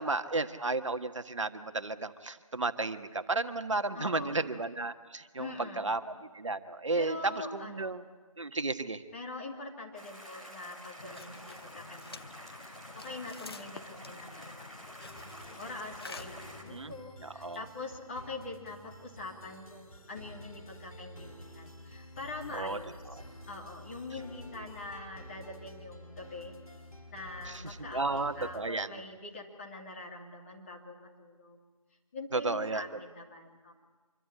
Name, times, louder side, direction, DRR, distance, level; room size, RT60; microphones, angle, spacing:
voice 1, 0.0-5.5 5.8-6.0 6.3-8.0 8.4-9.0 16.7-16.9 17.2-17.6 22.5-22.8 23.1-23.2 27.5-29.0 32.3-32.8, right 3 dB, 60° right, 9 dB, 1.4 m, -33 dB
voice 2, 3.9-4.4 5.4-5.9 6.9-8.0 9.1-15.2 15.6-23.2 23.5-26.5 27.1-31.6 32.1-33.7, left 2 dB, 20° left, -1 dB, 2.7 m, -44 dB
sound 1, 9.9-16.6, equal, ahead, 1.5 m, -49 dB
sound 2, 11.0-17.1, left 4 dB, 45° left, 0.9 m, -49 dB
sound 3, 15.0-28.6, left 1 dB, 85° left, 5.3 m, -50 dB
26.0 x 23.0 x 8.7 m, 1.4 s
figure-of-eight pair, 165°, 18 cm